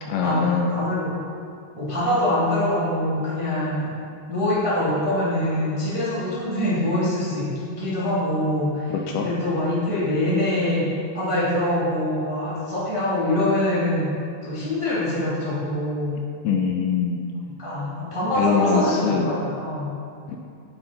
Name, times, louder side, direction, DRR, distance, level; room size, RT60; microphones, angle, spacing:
voice 1, 0.0-0.7 9.1-9.3 16.4-17.2 18.4-19.3 20.3-20.4, left 6 dB, 80° left, 1 dB, 2.4 m, -23 dB
voice 2, 0.7-1.1 1.7-3.9 4.3-10.8 11.1-14.1 14.4-16.2 17.6-19.9, left 1 dB, 15° right, -10 dB, 1.1 m, -24 dB
9.4 x 8.0 x 4.0 m, 2.4 s
omnidirectional pair, 4.8 m